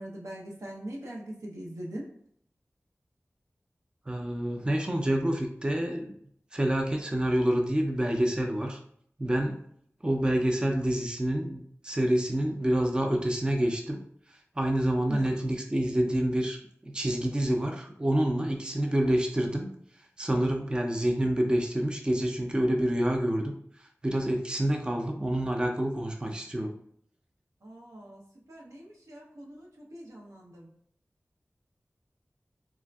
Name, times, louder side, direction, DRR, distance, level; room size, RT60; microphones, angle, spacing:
voice 1, 0.0-2.1 15.1-15.3 27.6-28.2 28.5-30.7, right 1 dB, 90° right, -3 dB, 0.7 m, -41 dB
voice 2, 4.1-6.1 6.5-8.8 9.2-9.6 10.0-14.0 14.6-19.7 20.2-23.5 24.0-26.7, right 1 dB, 20° right, 3 dB, 0.4 m, -27 dB
3.4 x 2.4 x 2.2 m, 0.66 s
wide cardioid pair, 70°, 5 cm